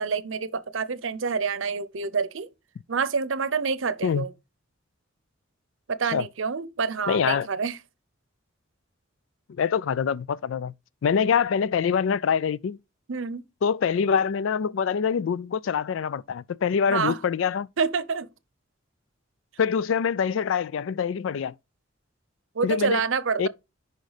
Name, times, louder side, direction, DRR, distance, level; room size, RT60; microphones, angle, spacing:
voice 1, 0.0-2.5 2.9-4.3 5.9-7.8 13.1-13.4 16.9-17.2 17.8-18.3 22.6-23.5, right 5 dB, 75° right, 0.7 m, -27 dB
voice 2, 7.1-7.5 9.6-10.7 11.0-12.8 13.6-17.7 19.6-21.5 22.6-23.0 23.4-23.5, left 7 dB, 75° left, 0.3 m, -25 dB
6.3 x 5.3 x 5.0 m
head